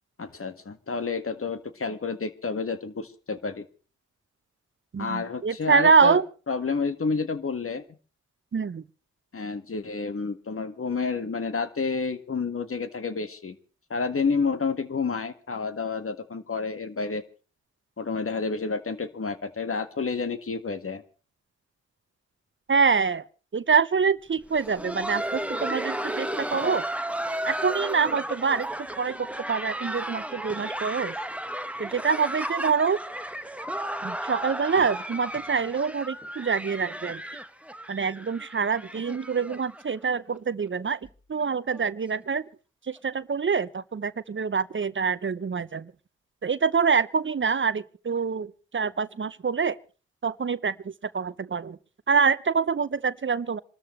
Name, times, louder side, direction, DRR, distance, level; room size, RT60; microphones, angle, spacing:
voice 1, 0.2-3.6 5.0-6.2 6.5-7.8 9.3-13.6 13.9-17.2 18.0-21.0, left 4 dB, 45° left, 1.8 m, -30 dB
voice 2, 4.9-6.3 8.5-8.8 22.7-23.3 23.5-26.8 27.5-31.1 31.8-33.0 34.0-37.2 37.9-41.0 41.3-42.4 42.9-45.9 46.4-49.8 50.2-51.8 52.1-53.6, right 5 dB, 40° right, 0.8 m, -25 dB
Laughter, 24.4-40.1 40.3-40.4 41.0-41.2 41.7-41.9 43.0-43.1, right 1 dB, 5° right, 1.4 m, -34 dB
27.0 x 13.0 x 3.2 m
supercardioid pair, 40°, 30 cm